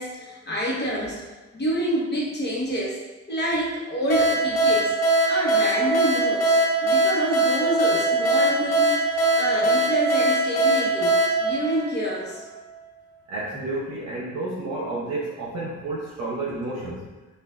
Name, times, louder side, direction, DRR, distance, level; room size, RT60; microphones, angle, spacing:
voice 1, 0.0-3.0 3.3-5.0 5.3-12.4, equal, 35° left, -4 dB, 1.1 m, -28 dB
sound 1, 4.1-12.5, right 2 dB, 60° left, 0.9 m, -21 dB
voice 2, 13.3-17.0, right 2 dB, 60° right, -5 dB, 0.8 m, -30 dB
4.9 x 2.4 x 2.5 m, 1.2 s
cardioid pair, 90°, 30 cm